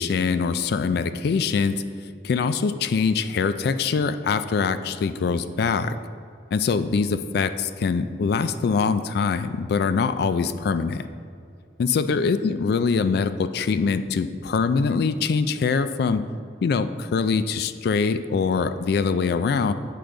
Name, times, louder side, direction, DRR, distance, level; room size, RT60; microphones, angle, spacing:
voice 1, 0.0-1.8 2.2-5.9 6.5-11.0 11.8-16.2 16.6-19.7, left 5 dB, 60° left, 12 dB, 0.3 m, -23 dB
8.0 x 5.0 x 3.8 m, 2.3 s
head